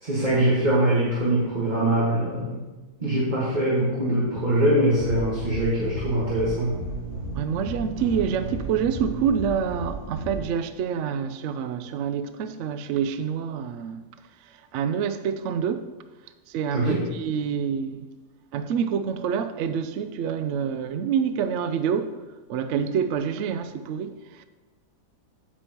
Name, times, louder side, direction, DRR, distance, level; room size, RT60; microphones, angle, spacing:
voice 1, 0.0-2.6 3.0-6.7 16.7-17.0, right 1 dB, 30° right, 1.6 m, -23 dB
sound 1, 5.0-10.4, right 2 dB, 50° right, 1.7 m, -34 dB
voice 2, 7.4-14.0 14.7-15.9 16.5-18.1 18.5-22.2 22.5-24.4, right 7 dB, 75° right, 0.6 m, -27 dB
8.8 x 8.6 x 3.0 m
omnidirectional pair, 1.8 m